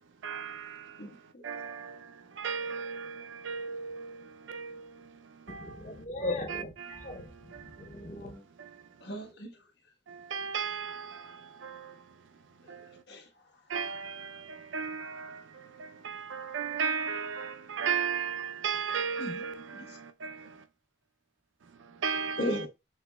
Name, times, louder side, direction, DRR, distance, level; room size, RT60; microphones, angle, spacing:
voice 1, 0.2-0.8 1.4-1.9 2.4-4.1 4.5-4.8 5.5-5.6 6.5-7.0 10.3-11.1 11.6-11.9 13.7-14.3 14.7-15.4 16.0-19.5 20.2-20.4 22.0-22.4, right 6 dB, 80° right, 0.4 m, -34 dB
voice 2, 1.0-1.4 6.2-6.3 9.0-9.5 13.1-13.2 19.2-19.4 19.9-20.0 22.1-22.7, left 1 dB, 60° left, 1.2 m, -34 dB
voice 3, 5.5-6.7 7.0-7.2 7.8-8.4, equal, 40° left, 0.8 m, -41 dB
6.0 x 3.0 x 2.2 m
head